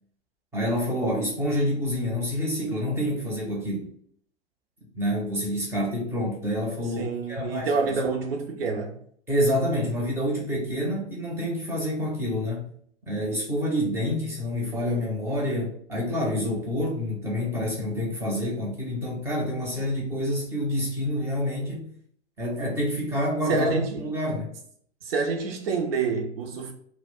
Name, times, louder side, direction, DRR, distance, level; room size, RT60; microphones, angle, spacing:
voice 1, 0.5-3.9 4.9-8.0 9.3-12.7 13.1-21.9 22.4-24.5, equal, 5° right, 0.6 m, -27 dB
voice 2, 7.0-9.0 23.5-24.0 25.0-26.7, right 4 dB, 55° right, 0.6 m, -27 dB
2.3 x 2.1 x 3.6 m
figure-of-eight pair, 105°, 35 cm